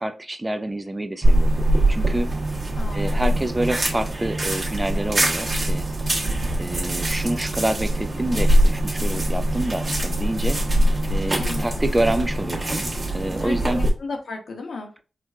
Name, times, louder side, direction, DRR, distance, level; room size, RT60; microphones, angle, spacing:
voice 1, 0.0-1.5 1.9-2.3 2.9-5.8 6.6-10.6 11.1-12.9 13.1-13.8, right 1 dB, 20° right, 9 dB, 0.4 m, -27 dB
sound 1, 1.2-13.9, right 1 dB, 40° right, 1.2 m, -22 dB
sound 2, 1.2-12.4, right 3 dB, 65° right, 0.8 m, -35 dB
voice 2, 2.8-3.4 11.4-11.7 13.4-14.9, left 3 dB, 70° left, 2 dB, 0.9 m, -34 dB
4.5 x 2.3 x 2.3 m, 0.34 s
cardioid pair, 50°, 0 cm